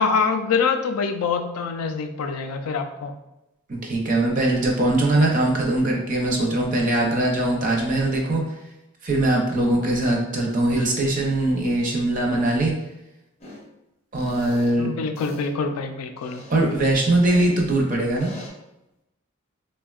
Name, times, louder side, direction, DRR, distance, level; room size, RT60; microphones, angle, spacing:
voice 1, 0.0-3.1 14.8-16.4, left 5 dB, 85° left, 7 dB, 0.3 m, -25 dB
voice 2, 3.7-8.4 9.0-12.7 14.1-14.9 16.5-18.3, right 2 dB, 35° right, -1 dB, 0.5 m, -21 dB
sound 1, 13.4-13.6 14.2-14.7 15.2-15.5 16.2-17.5 18.2-18.5, left 1 dB, 30° left, 0.6 m, -43 dB
3.4 x 2.1 x 2.3 m, 0.94 s
head